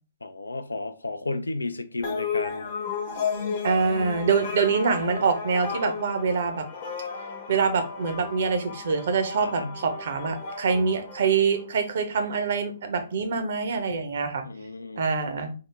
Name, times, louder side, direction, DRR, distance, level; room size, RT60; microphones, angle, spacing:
voice 1, 0.2-2.7 9.4-9.8 14.4-15.1, left 2 dB, 85° left, 0.3 m, -33 dB
sound 1, 2.0-11.8, left 6 dB, 45° left, 0.9 m, -34 dB
voice 2, 3.6-6.6 7.5-14.4 15.0-15.5, right 5 dB, 55° right, 0.6 m, -25 dB
3.6 x 2.0 x 3.2 m
figure-of-eight pair, 125°, 0 cm